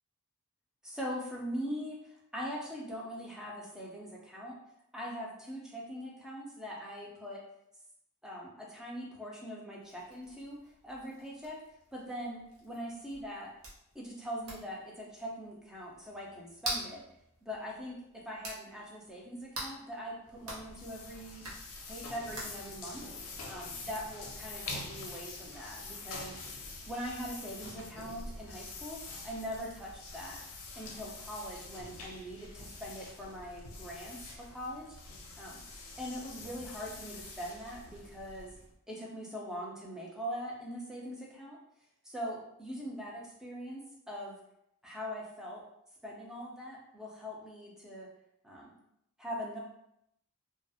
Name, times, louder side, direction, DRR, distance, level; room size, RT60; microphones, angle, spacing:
voice 1, 0.8-4.5 4.9-7.4 8.2-10.6 10.8-11.6 11.9-13.5 13.9-17.0 17.4-18.0 18.3-21.5 21.9-23.0 23.5-26.4 26.9-29.0 29.2-30.4 30.7-34.9 35.4-35.6 36.0-38.6 38.9-41.6 42.0-44.4 44.8-45.6 46.0-48.1 48.4-48.7 49.2-49.6, equal, 5° right, -4 dB, 0.4 m, -42 dB
sound 1, 9.8-26.2, right 1 dB, 70° right, 0.7 m, -47 dB
sound 2, 20.3-38.7, left 3 dB, 80° left, 0.5 m, -46 dB
2.3 x 2.0 x 2.6 m, 0.78 s
head